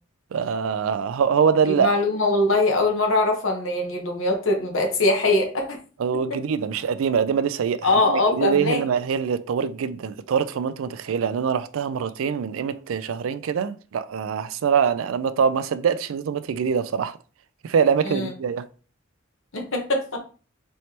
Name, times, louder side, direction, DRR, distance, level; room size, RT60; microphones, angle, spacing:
voice 1, 0.3-2.0 6.0-17.2 17.6-18.7, right 7 dB, 90° right, 0.4 m, -24 dB
voice 2, 1.6-5.8 7.8-8.9 18.0-18.3 19.5-20.2, left 2 dB, 80° left, 1.1 m, -22 dB
4.4 x 3.2 x 2.8 m
head